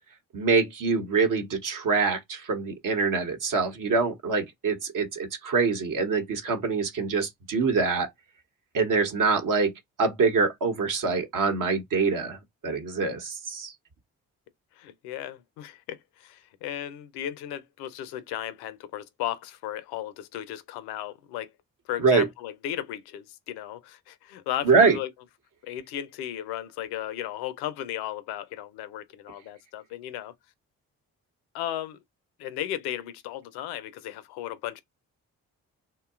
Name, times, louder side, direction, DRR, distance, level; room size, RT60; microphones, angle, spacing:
voice 1, 0.3-8.1 8.7-9.7 10.0-12.4 12.6-13.7 22.0-22.2 24.6-25.0, right 4 dB, 55° right, 0.9 m, -24 dB
voice 2, 14.8-21.5 21.9-25.1 25.6-30.3 31.5-32.0 32.4-34.8, left 12 dB, 80° left, 0.5 m, -35 dB
2.7 x 2.2 x 2.3 m
hypercardioid pair, 45°, 38 cm